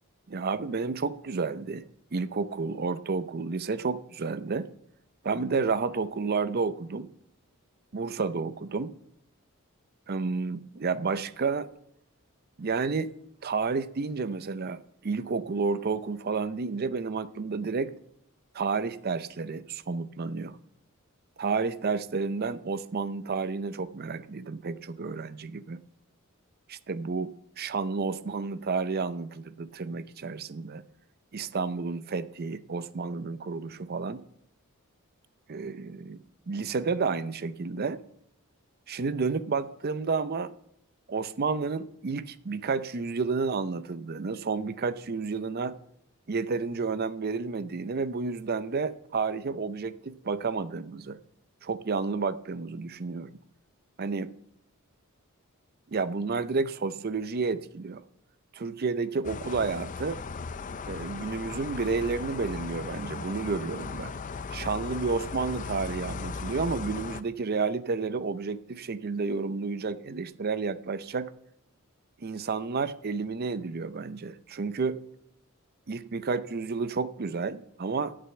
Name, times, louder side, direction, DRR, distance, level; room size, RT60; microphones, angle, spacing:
voice 1, 0.3-1.8 2.1-4.7 5.2-7.1 7.9-8.9 10.1-11.7 12.6-13.1 13.4-17.9 18.5-20.6 21.4-25.8 26.7-30.8 31.3-34.2 35.5-36.2 36.5-38.0 38.9-40.5 41.1-45.7 46.3-51.2 51.6-53.3 54.0-54.3 55.9-58.0 58.5-60.2 60.9-64.1 64.5-71.3 72.2-75.0 75.9-78.2, right 4 dB, 45° right, 0.5 m, -31 dB
sound 1, 59.2-67.2, left 4 dB, 35° left, 0.4 m, -37 dB
9.0 x 6.8 x 7.8 m
head